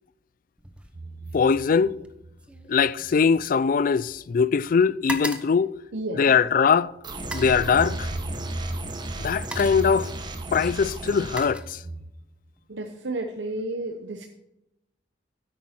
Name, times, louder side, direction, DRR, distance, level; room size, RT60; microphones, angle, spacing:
sound 1, 0.6-1.0 1.2-4.4 4.7-6.6 7.2-7.6 8.7-8.8 9.2-10.0 10.8-12.2 12.6-12.9, right 1 dB, 5° right, 0.9 m, -39 dB
sound 2, 0.9-3.5 3.8-4.1 4.4-4.5 7.0-12.1, right 2 dB, 55° right, 0.8 m, -36 dB
voice 1, 1.3-2.0 2.7-5.7 6.2-6.9 7.3-8.1 9.2-10.1 10.5-11.8, left 6 dB, 50° left, 0.4 m, -21 dB
voice 2, 5.9-6.3 12.7-14.3, right 2 dB, 85° right, 0.8 m, -32 dB
sound 3, 7.0-11.4, right 2 dB, 25° right, 1.1 m, -36 dB
10.0 x 8.5 x 4.3 m
head